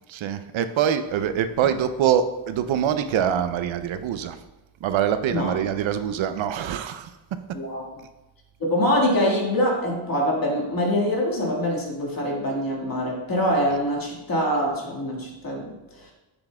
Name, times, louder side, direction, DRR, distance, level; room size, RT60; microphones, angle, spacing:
voice 1, 0.1-4.4 4.8-7.1, right 9 dB, 80° right, 10 dB, 0.5 m, -24 dB
voice 2, 7.5-7.8 8.6-16.1, equal, 45° left, -2 dB, 1.8 m, -24 dB
7.1 x 6.9 x 2.2 m, 1.0 s
cardioid pair, 105°, 46 cm